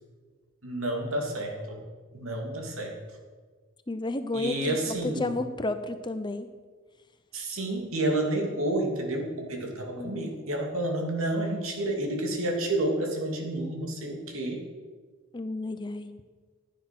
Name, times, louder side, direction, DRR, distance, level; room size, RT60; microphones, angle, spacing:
voice 1, 0.6-1.9 2.1-3.0 4.3-5.3 7.3-14.6, right 1 dB, 70° right, 2 dB, 2.7 m, -30 dB
voice 2, 3.9-6.5 10.0-10.3 15.3-16.1, left 2 dB, 20° left, 9 dB, 0.6 m, -32 dB
15.0 x 10.5 x 6.0 m, 1.5 s
head